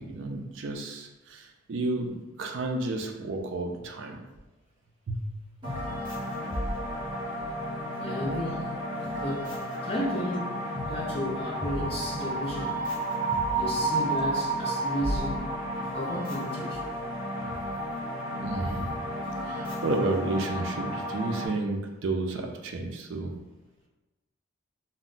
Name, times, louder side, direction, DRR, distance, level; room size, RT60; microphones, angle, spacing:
voice 1, 0.0-4.2 5.1-5.3 17.4-17.5 18.4-19.0 19.4-23.3, right 2 dB, 60° right, 3 dB, 0.4 m, -31 dB
sound 1, 5.6-21.5, right 1 dB, 20° right, 1.1 m, -32 dB
voice 2, 8.0-8.8 9.2-10.6 10.9-12.8 13.5-15.4 15.9-16.8, left 1 dB, 25° left, -3 dB, 0.5 m, -33 dB
2.2 x 2.0 x 3.8 m, 1.1 s
head